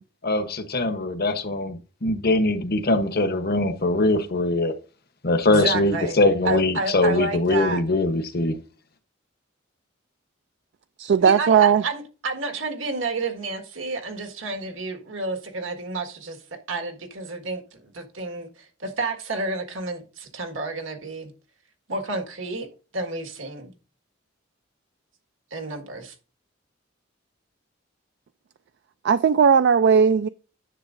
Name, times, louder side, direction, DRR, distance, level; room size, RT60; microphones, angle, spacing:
voice 1, 0.2-4.7 5.2-8.6, left 2 dB, 55° left, 1.0 m, -22 dB
voice 2, 5.5-6.2 6.4-7.8 11.2-16.4 16.7-21.3 21.9-22.7 22.9-23.7 25.5-26.1, right 3 dB, 80° right, 1.7 m, -30 dB
voice 3, 11.0-11.8 29.0-30.3, right 7 dB, 60° right, 0.3 m, -17 dB
10.0 x 7.1 x 2.6 m
head